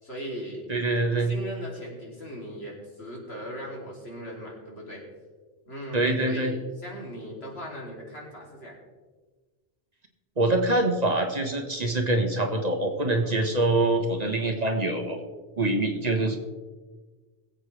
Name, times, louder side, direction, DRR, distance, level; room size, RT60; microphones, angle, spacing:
voice 1, 0.0-0.7 1.2-5.0 5.7-8.8 13.2-13.5, equal, 90° left, -3 dB, 3.3 m, -38 dB
voice 2, 0.7-1.3 5.9-6.5 10.4-15.2 15.6-16.4, right 2 dB, 40° right, 3 dB, 1.5 m, -25 dB
21.5 x 8.0 x 3.4 m, 1.3 s
omnidirectional pair, 1.0 m